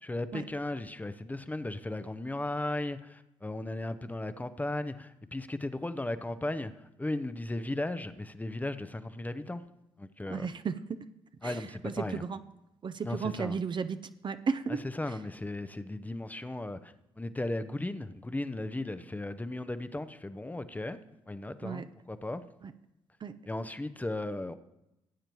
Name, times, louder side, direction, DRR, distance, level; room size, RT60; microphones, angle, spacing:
voice 1, 0.0-9.6 10.0-10.5 11.4-12.2 13.0-13.6 14.7-21.0 21.3-22.4 23.5-24.6, left 2 dB, 10° left, 0.6 m, -36 dB
voice 2, 10.3-11.0 11.4-12.4 12.8-14.0 14.2-14.8 21.6-21.8 22.6-22.7 23.2-23.4, right 5 dB, 35° right, 0.6 m, -34 dB
17.5 x 8.8 x 3.1 m
hypercardioid pair, 50°, 13 cm